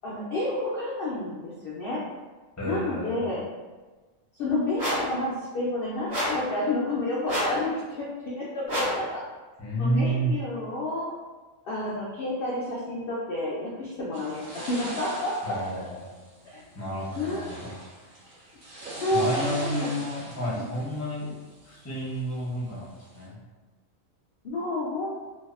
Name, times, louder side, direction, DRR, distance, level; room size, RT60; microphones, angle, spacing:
voice 1, 0.0-2.0 2.6-3.4 4.4-7.7 8.0-9.2 9.8-11.1 11.6-15.6 16.5-16.6 17.2-17.5 19.0-19.9 24.4-25.1, left 2 dB, 65° left, -6 dB, 0.6 m, -30 dB
voice 2, 2.6-3.3 9.6-10.3 15.4-16.1 16.7-17.8 19.1-21.4 21.6-23.4, right 1 dB, 20° left, -8 dB, 0.5 m, -30 dB
sound 1, 4.8-5.1 6.1-6.5 7.3-7.6 8.7-9.0, equal, 35° right, 0.8 m, -28 dB
sound 2, 14.1-23.2, right 1 dB, 85° right, 1.2 m, -42 dB
2.6 x 2.3 x 2.4 m, 1.3 s
omnidirectional pair, 1.4 m